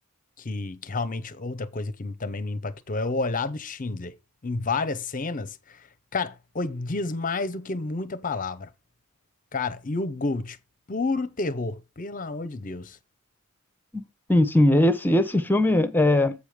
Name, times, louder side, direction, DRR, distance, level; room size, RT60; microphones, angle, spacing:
voice 1, 0.4-4.2 4.4-8.7 9.5-10.6 10.9-13.0, left 3 dB, 35° left, 0.7 m, -30 dB
voice 2, 14.3-16.3, left 1 dB, 10° left, 0.9 m, -20 dB
8.4 x 5.0 x 5.0 m
head